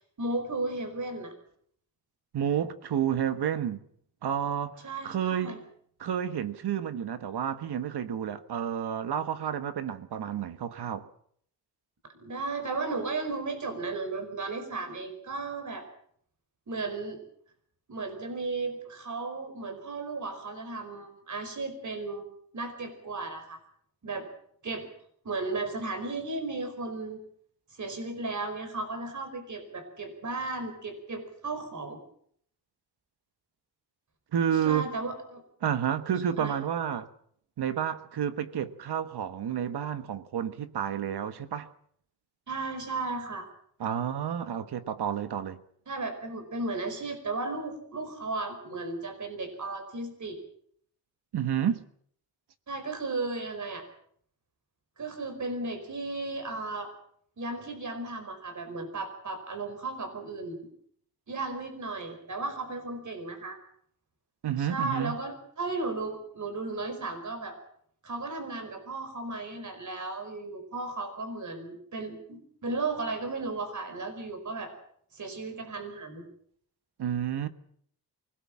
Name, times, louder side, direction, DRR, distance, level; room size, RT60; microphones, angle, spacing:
voice 1, 0.0-1.3 4.8-5.6 12.2-15.8 16.7-17.2 17.9-22.3 22.5-23.6 24.0-24.3 24.6-24.9 25.2-27.2 27.7-32.0 34.6-35.4 36.4-36.6 42.5-43.5 45.9-50.4 52.7-53.8 55.0-56.9 57.4-60.6 61.3-63.6 64.6-67.6 68.0-74.7 75.1-76.3, right 3 dB, 50° right, 4.9 m, -35 dB
voice 2, 2.3-3.8 4.2-5.6 6.0-11.1 34.3-34.9 35.6-37.1 37.6-41.7 43.8-45.6 51.3-51.8 64.4-65.2 77.0-77.5, right 9 dB, 90° right, 1.4 m, -30 dB
24.0 x 18.0 x 7.4 m
wide cardioid pair, 130°, 38 cm